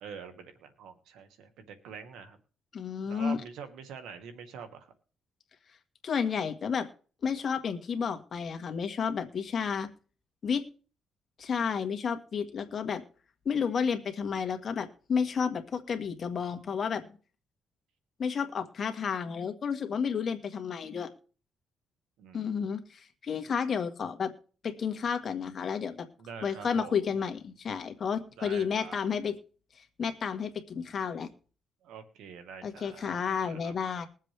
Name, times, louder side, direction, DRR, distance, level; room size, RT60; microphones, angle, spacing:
voice 1, 0.0-2.4 3.0-4.9 22.2-22.7 26.2-26.9 28.4-29.0 31.8-33.2 33.5-33.7, right 6 dB, 90° right, 7 dB, 1.7 m, -45 dB
voice 2, 2.7-3.4 6.0-6.9 7.2-9.9 10.4-10.7 11.4-13.0 13.5-17.0 18.2-21.1 22.3-24.3 24.6-26.1 26.4-29.3 29.8-31.3 32.6-34.1, left 6 dB, 50° left, 7 dB, 1.7 m, -31 dB
21.5 x 7.5 x 3.4 m, 0.40 s
cardioid pair, 90°, 0 cm